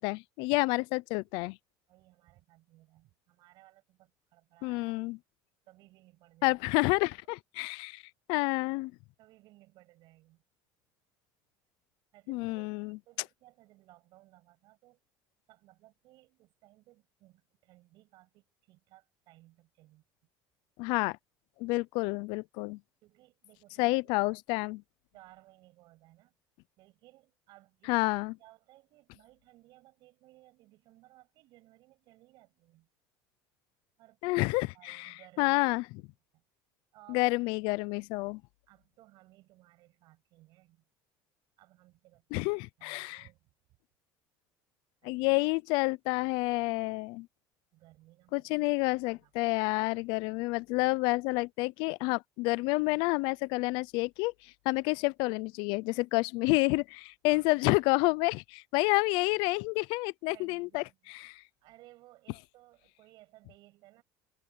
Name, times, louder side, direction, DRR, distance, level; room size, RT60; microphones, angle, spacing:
voice 1, 0.0-1.6 4.6-5.2 6.4-8.0 8.3-8.9 12.3-13.0 20.8-21.2 21.6-22.8 23.8-24.8 27.9-28.3 34.2-35.8 37.1-38.4 42.3-43.2 45.0-47.3 48.3-60.8 61.3-61.4, left 25 dB, 70° left, 0.5 m, -29 dB
voice 2, 1.9-4.9 5.7-6.6 9.2-10.4 12.1-15.0 15.5-20.0 23.0-24.0 25.1-26.3 26.8-28.0 28.4-32.9 34.0-35.6 36.3-36.4 36.9-37.3 38.7-40.8 41.6-42.5 42.8-43.5 45.0-45.4 47.7-48.5 49.2-49.6 50.2-50.3 57.3-57.5 60.3-61.1 61.6-64.0, right 18 dB, 60° right, 7.6 m, -60 dB
cardioid pair, 145°, 8 cm